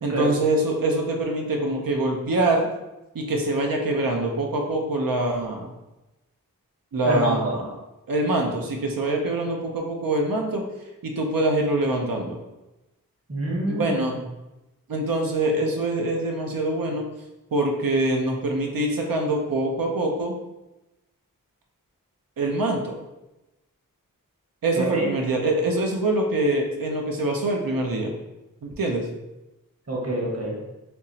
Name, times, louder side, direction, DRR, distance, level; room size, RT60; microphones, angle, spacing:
voice 1, 0.0-2.7 3.1-5.7 6.9-7.7 8.1-10.6 11.0-12.4 13.7-14.1 14.9-17.1 17.5-20.3 22.4-23.0 24.6-28.1 28.6-29.0, right 2 dB, 75° right, 1 dB, 0.6 m, -24 dB
voice 2, 7.0-7.5 13.3-13.9 24.7-25.1 29.9-30.6, right 2 dB, 45° right, -3 dB, 1.1 m, -26 dB
3.5 x 2.8 x 2.7 m, 0.99 s
cardioid pair, 45°, 35 cm